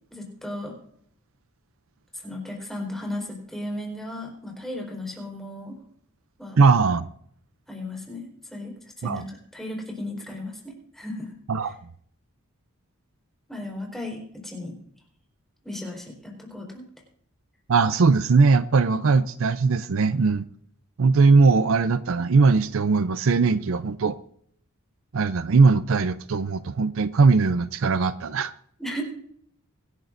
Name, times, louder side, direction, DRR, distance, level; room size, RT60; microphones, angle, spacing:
voice 1, 0.1-0.8 2.1-5.8 6.4-6.6 7.7-11.3 13.5-14.7 15.6-16.8 18.9-19.0 28.8-29.0, left 1 dB, ahead, 4.0 m, -35 dB
voice 2, 6.6-7.1 9.0-9.2 11.5-11.7 17.7-20.4 21.0-24.2 25.1-28.5, right 4 dB, 65° right, 0.5 m, -20 dB
24.5 x 11.0 x 2.6 m
head